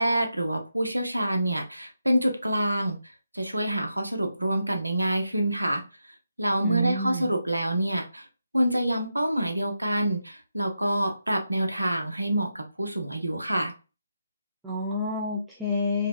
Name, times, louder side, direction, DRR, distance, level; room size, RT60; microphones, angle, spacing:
voice 1, 0.0-3.0 3.3-5.8 6.4-8.3 8.5-13.7, right 1 dB, 90° right, 4 dB, 0.7 m, -26 dB
voice 2, 6.6-7.3 14.6-16.1, left 1 dB, 5° right, -4 dB, 0.4 m, -28 dB
2.7 x 2.0 x 2.2 m, 0.32 s
figure-of-eight pair, 145°, 0 cm